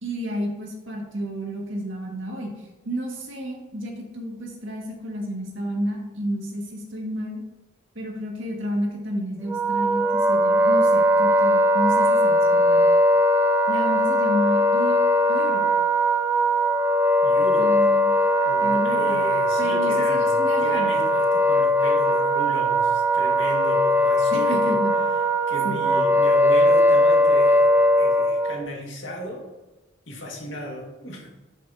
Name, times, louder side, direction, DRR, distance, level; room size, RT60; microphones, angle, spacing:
voice 1, 0.0-2.5 2.9-7.4 8.0-12.9 13.7-15.0 15.3-15.7 17.6-18.1 18.6-19.2 19.6-20.9 24.3-25.0 25.6-25.8, equal, 85° right, 0 dB, 1.9 m, -30 dB
Wind instrument woodwind instrument, 9.5-28.6, equal, 10° right, 0.3 m, -20 dB
voice 2, 17.2-17.8 18.5-24.8 25.0-29.5 30.1-31.3, equal, 80° left, 0 dB, 1.9 m, -35 dB
11.0 x 6.2 x 2.8 m, 1.1 s
head